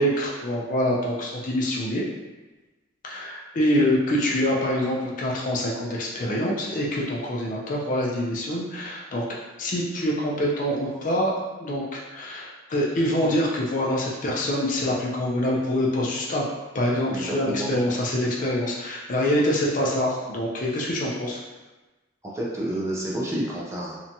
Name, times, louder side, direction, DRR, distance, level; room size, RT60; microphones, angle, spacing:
voice 1, 0.0-2.0 3.0-9.3 9.6-16.4 16.7-21.4, equal, 40° left, -3 dB, 0.4 m, -25 dB
voice 2, 17.1-17.7 22.2-24.0, right 1 dB, 15° right, -5 dB, 0.4 m, -30 dB
2.8 x 2.2 x 2.6 m, 1.2 s
head